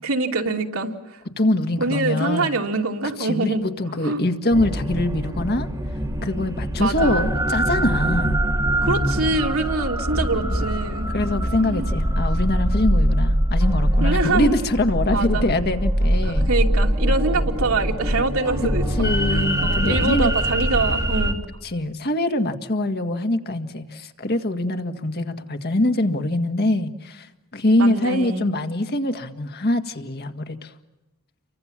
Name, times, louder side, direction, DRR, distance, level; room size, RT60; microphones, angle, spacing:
voice 1, 0.0-1.2 1.8-3.7 4.0-4.2 6.8-7.3 8.8-11.1 11.6-11.8 14.0-14.5 15.1-15.5 16.2-21.4 27.8-28.5, right 3 dB, 75° right, 3 dB, 2.8 m, -25 dB
voice 2, 1.4-2.5 3.2-5.7 6.2-8.5 11.1-16.5 19.0-20.3 21.6-27.3 27.5-30.7, left 1 dB, 50° left, 6 dB, 1.9 m, -23 dB
sound 1, 4.5-21.3, equal, 15° right, 2.9 m, -23 dB
30.0 x 24.5 x 7.5 m, 1.1 s
head